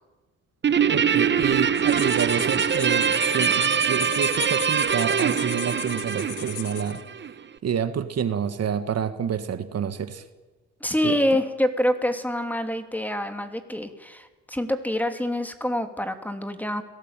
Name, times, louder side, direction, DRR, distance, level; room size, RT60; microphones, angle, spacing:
Guitar, 0.6-7.3, right 7 dB, 35° right, 1.1 m, -23 dB
voice 1, 0.9-7.0 7.6-10.2 11.0-11.2, right 8 dB, 55° right, 10 dB, 1.7 m, -28 dB
sound 1, 1.7-7.0, left 12 dB, 75° left, 1.8 m, -36 dB
voice 2, 10.8-16.8, left 1 dB, 5° left, 7 dB, 2.9 m, -26 dB
30.0 x 18.0 x 9.0 m, 1.2 s
cardioid pair, 90°, 30 cm